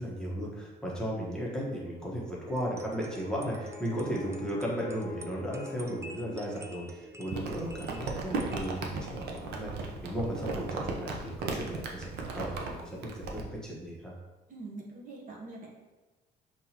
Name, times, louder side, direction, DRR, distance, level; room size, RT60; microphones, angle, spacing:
voice 1, 0.0-14.1, equal, 5° left, -5 dB, 1.1 m, -35 dB
sound 1, 2.5-10.8, right 1 dB, 15° right, 0.4 m, -50 dB
Brass instrument, 2.6-7.0, left 9 dB, 50° left, 0.6 m, -49 dB
Crumpling crinkling, 7.3-13.4, right 4 dB, 75° right, 0.7 m, -36 dB
voice 2, 14.5-15.7, right 3 dB, 50° right, -2 dB, 1.0 m, -43 dB
5.8 x 2.9 x 2.9 m, 1.2 s
cardioid pair, 110°, 17 cm